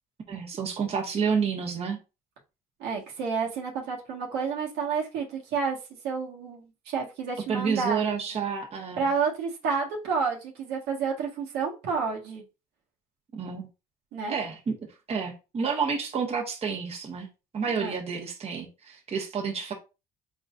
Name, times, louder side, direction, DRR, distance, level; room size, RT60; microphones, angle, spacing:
voice 1, 0.3-2.0 7.5-9.1 13.3-13.7 14.3-14.8 15.1-17.3 17.5-19.7, right 6 dB, 35° right, 1.1 m, -29 dB
voice 2, 2.8-5.8 6.0-8.0 9.0-12.4 14.1-14.3 17.7-17.9, right 5 dB, 90° right, 1.5 m, -30 dB
4.0 x 3.9 x 2.5 m
cardioid pair, 110°, 17 cm